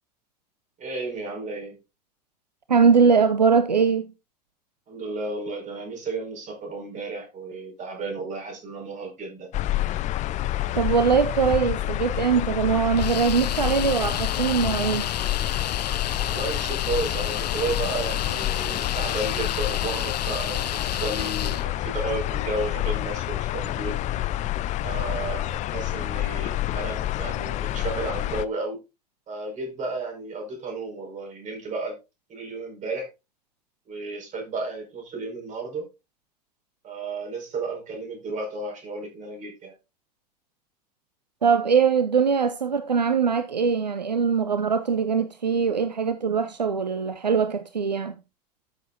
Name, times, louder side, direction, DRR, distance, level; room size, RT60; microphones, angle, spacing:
voice 1, 0.8-1.8 4.9-9.5 16.3-24.0 24.8-28.8 29.3-32.0 32.3-33.1 33.9-35.9 36.8-39.7, right 3 dB, 35° right, 5.4 m, -33 dB
voice 2, 2.7-4.1 10.7-15.1 41.4-48.1, right 6 dB, 85° right, 0.6 m, -22 dB
sound 1, 9.5-28.4, left 14 dB, 35° left, 0.5 m, -28 dB
sound 2, 13.0-21.7, left 10 dB, 75° left, 0.6 m, -33 dB
13.0 x 7.0 x 2.6 m
figure-of-eight pair, 75°, 21 cm